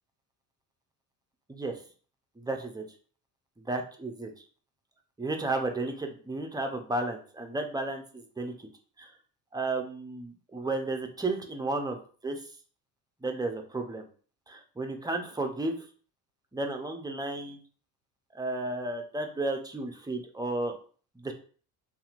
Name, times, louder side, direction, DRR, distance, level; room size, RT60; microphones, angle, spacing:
voice 1, 1.5-1.8 2.4-2.8 3.6-4.4 5.2-8.7 9.0-9.1 9.5-12.0 12.2-12.4 13.2-14.1 14.5-15.9 16.5-17.6 18.3-20.7 21.2-21.3, right 2 dB, 10° right, 4 dB, 0.4 m, -33 dB
2.8 x 2.5 x 2.4 m, 0.42 s
hypercardioid pair, 65°, 48 cm